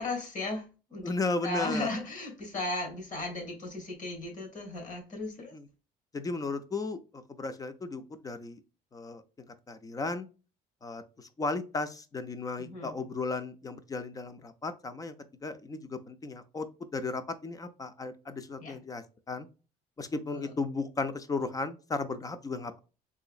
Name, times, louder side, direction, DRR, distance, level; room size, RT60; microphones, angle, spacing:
voice 1, 0.0-1.1 1.4-5.5 12.6-13.0 18.6-18.8 20.3-20.5, left 2 dB, 50° left, 2 dB, 2.0 m, -36 dB
voice 2, 1.0-1.9 5.5-5.7 6.1-8.6 8.9-9.2 9.7-10.3 10.8-15.1 15.4-16.7 16.9-19.5 20.0-22.8, left 3 dB, 20° left, 11 dB, 0.5 m, -35 dB
3.7 x 3.0 x 2.4 m, 0.32 s
cardioid pair, 110°, 17 cm